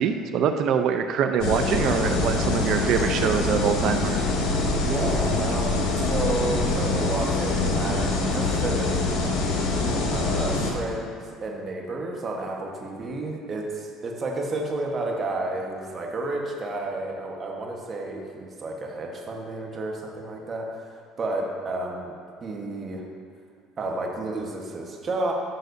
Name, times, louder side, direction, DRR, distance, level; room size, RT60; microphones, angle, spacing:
voice 1, 0.0-4.2, right 7 dB, 60° right, 7 dB, 0.6 m, -24 dB
sound 1, 1.4-10.7, left 2 dB, 70° left, 1.6 m, -24 dB
voice 2, 4.9-9.0 10.1-22.1 22.4-23.0 23.8-25.3, right 2 dB, 40° right, 0 dB, 1.3 m, -31 dB
14.0 x 6.2 x 2.7 m, 2.2 s
supercardioid pair, 90°, 0 cm